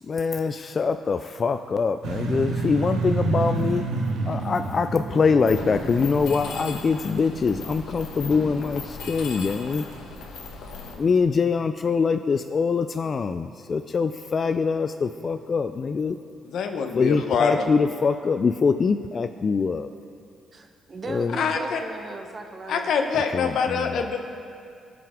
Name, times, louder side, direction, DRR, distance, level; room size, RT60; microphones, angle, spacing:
voice 1, 0.1-9.8 11.0-16.2 16.9-19.9 21.1-21.4 23.3-24.0, left 5 dB, 40° left, 9 dB, 0.3 m, -24 dB
sound 1, 2.0-8.2, right 3 dB, 80° right, 0.9 m, -29 dB
Mechanisms, 5.5-10.9, left 3 dB, 85° left, 1.3 m, -37 dB
voice 2, 16.4-17.6 21.3-21.8 22.7-24.2, left 5 dB, 70° left, 5 dB, 0.9 m, -24 dB
voice 3, 20.5-22.9, right 2 dB, 35° right, 4 dB, 1.0 m, -37 dB
17.0 x 5.9 x 3.6 m, 2.3 s
cardioid pair, 90°, 0 cm